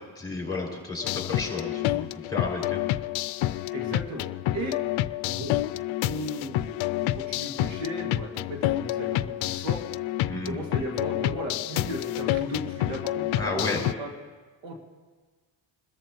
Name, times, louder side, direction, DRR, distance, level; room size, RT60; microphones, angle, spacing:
voice 1, 0.2-2.8 10.3-10.6 13.3-13.8, left 3 dB, 10° left, -2 dB, 6.0 m, -32 dB
sound 1, 1.0-13.9, left 15 dB, 80° left, 0.6 m, -29 dB
voice 2, 3.7-4.3 4.5-4.8 5.2-5.6 6.0-9.8 10.4-14.1 14.6-14.8, right 1 dB, 80° right, 1 dB, 2.5 m, -35 dB
26.5 x 13.5 x 3.1 m, 1.4 s
cardioid pair, 100°, 47 cm